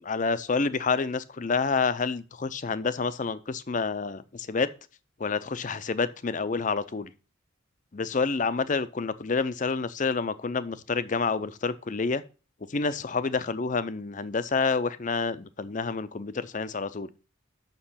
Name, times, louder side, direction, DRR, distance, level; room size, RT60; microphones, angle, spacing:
voice 1, 0.0-4.7 5.2-7.1 7.9-12.2 12.7-17.1, left 4 dB, 40° left, 0.5 m, -28 dB
6.7 x 6.0 x 5.6 m
head